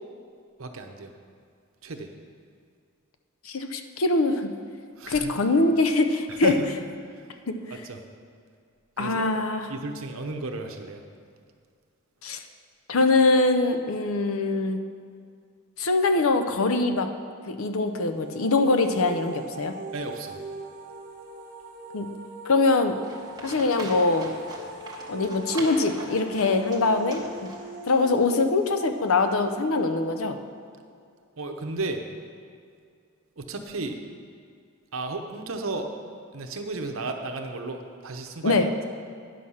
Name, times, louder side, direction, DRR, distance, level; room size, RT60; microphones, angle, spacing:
voice 1, 0.6-1.1 1.8-2.1 5.0-5.3 6.3-6.7 7.1-7.4 7.7-8.0 9.0-9.3 9.7-11.0 19.9-20.4 31.4-32.0 33.4-34.0 34.9-35.9 36.3-38.8, right 2 dB, 70° right, 5 dB, 0.9 m, -34 dB
voice 2, 3.4-4.5 5.1-6.6 7.5-7.6 9.0-9.7 12.2-12.4 12.9-14.8 15.8-17.1 17.4-19.7 21.9-22.1 22.4-22.9 23.4-24.3 25.1-27.2 27.9-30.4 38.4-38.7, left 3 dB, 75° left, 8 dB, 0.7 m, -23 dB
sound 1, 17.9-30.7, right 2 dB, 40° right, 1.0 m, -42 dB
Livestock farm animals working animals, 23.0-28.0, right 2 dB, 20° right, 1.4 m, -41 dB
10.0 x 6.5 x 5.6 m, 2.2 s
head